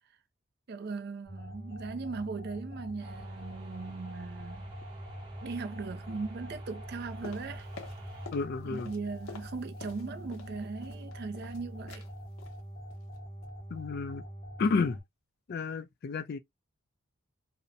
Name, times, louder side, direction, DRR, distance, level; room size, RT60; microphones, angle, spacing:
voice 1, 0.7-4.7 5.4-7.7 8.1-8.2 8.7-12.1, right 4 dB, 45° right, 0.4 m, -39 dB
sound 1, 1.2-15.0, equal, 30° left, 0.9 m, -44 dB
sound 2, 3.0-8.3, right 1 dB, 25° right, 0.7 m, -50 dB
sound 3, 7.2-8.5 8.7-10.5 10.8-11.6 11.9-12.1 12.4-12.6 12.9-13.2 13.4-13.5, left 4 dB, 75° left, 0.7 m, -48 dB
voice 2, 8.3-8.9 13.7-14.2 14.6-15.0 15.5-16.4, left 4 dB, 45° left, 0.3 m, -31 dB
2.7 x 2.0 x 2.4 m
head